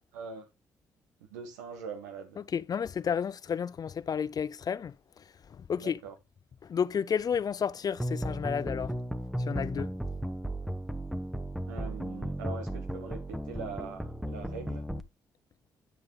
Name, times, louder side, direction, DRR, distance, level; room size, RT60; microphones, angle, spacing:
voice 1, 0.1-0.5 1.2-2.4 5.8-6.2 11.7-14.9, right 5 dB, 85° right, 1.6 m, -42 dB
voice 2, 2.5-4.9 5.7-5.9 6.7-8.9 9.5-9.9, left 7 dB, 45° left, 0.6 m, -31 dB
sound 1, 8.0-15.0, right 1 dB, ahead, 1.2 m, -35 dB
10.0 x 6.6 x 3.3 m
hypercardioid pair, 45°, 9 cm